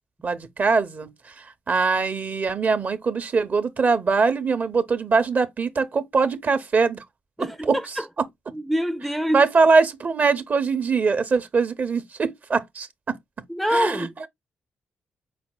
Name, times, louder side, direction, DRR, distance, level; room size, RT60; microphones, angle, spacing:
voice 1, 0.2-1.1 1.4-7.0 7.4-7.8 9.3-13.1 13.7-14.1, right 4 dB, 45° right, 0.8 m, -22 dB
voice 2, 7.4-8.1 8.5-9.4 13.5-14.1, equal, 5° left, 0.4 m, -25 dB
5.1 x 4.2 x 2.2 m
supercardioid pair, 55°, 4 cm